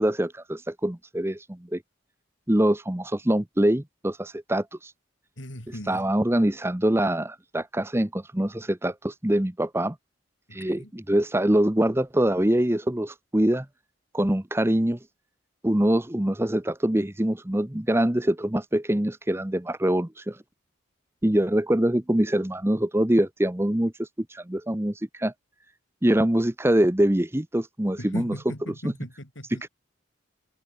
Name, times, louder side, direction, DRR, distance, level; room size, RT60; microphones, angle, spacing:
voice 1, 0.0-1.8 2.5-4.9 5.9-10.0 10.5-13.7 14.1-15.0 15.6-20.4 21.2-25.3 26.0-28.3 28.8-28.9 29.5-29.7, right 1 dB, 10° right, 0.8 m, -24 dB
voice 2, 5.4-6.1 10.5-10.9 28.0-29.6, equal, 65° left, 6.5 m, -38 dB
head